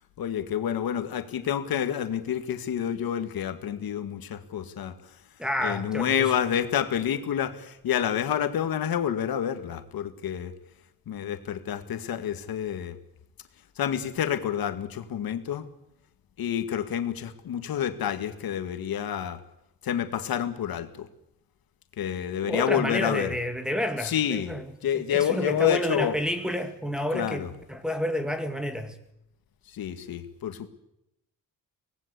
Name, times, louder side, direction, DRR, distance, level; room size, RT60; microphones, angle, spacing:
voice 1, 0.2-4.9 5.6-10.5 11.1-13.0 13.8-15.7 16.4-19.4 19.8-21.1 22.0-23.3 24.0-24.5 24.8-26.2 27.1-27.5 29.7-30.7, left 9 dB, 80° left, 8 dB, 2.0 m, -28 dB
voice 2, 5.4-6.3 22.4-29.0, equal, ahead, 4 dB, 1.9 m, -30 dB
24.0 x 19.0 x 8.3 m, 0.82 s
wide cardioid pair, 160°, 35 cm